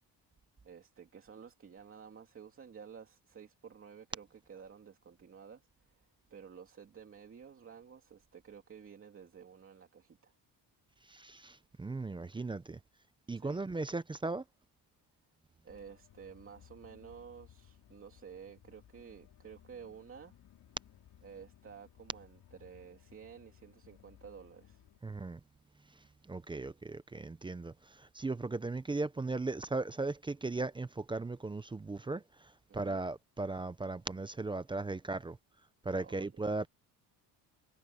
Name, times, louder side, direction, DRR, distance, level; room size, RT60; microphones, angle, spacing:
voice 1, 0.6-6.0 6.3-10.3 13.4-13.7 15.6-20.3 21.2-24.8 32.7-33.0 36.0-36.4, right 7 dB, 30° right, 2.6 m, -52 dB
voice 2, 11.1-12.8 13.3-14.4 25.0-25.4 25.9-35.4 35.8-36.7, right 3 dB, 10° right, 0.5 m, -37 dB
sound 1, 15.7-25.0, left 11 dB, 55° left, 4.0 m, -61 dB
cardioid pair, 155°, 43 cm